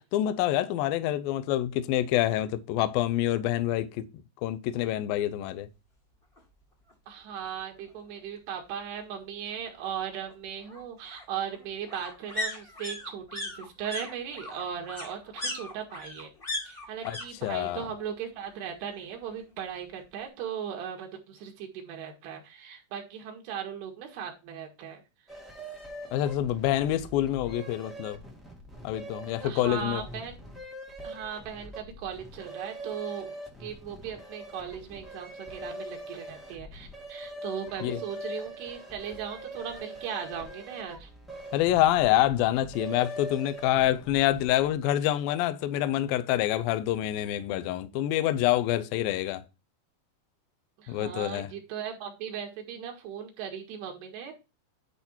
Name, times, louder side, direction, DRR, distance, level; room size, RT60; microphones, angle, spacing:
voice 1, 0.1-4.0 4.4-5.7 17.1-17.2 17.4-17.8 26.1-28.2 28.8-30.0 37.8-38.0 41.5-49.4 50.9-51.5, left 13 dB, 80° left, 2.1 m, -26 dB
sound 1, 6.4-6.5 6.8-6.9 7.2-8.2 9.5-17.3 17.5-18.1 18.3-19.4 19.7-19.8, left 2 dB, 25° left, 1.1 m, -39 dB
voice 2, 7.1-16.3 16.7-25.0 29.4-30.4 31.0-41.1 50.8-54.3, right 8 dB, 75° right, 3.6 m, -38 dB
sound 2, 25.3-44.7, right 1 dB, ahead, 0.4 m, -43 dB
10.0 x 4.3 x 4.3 m
omnidirectional pair, 4.8 m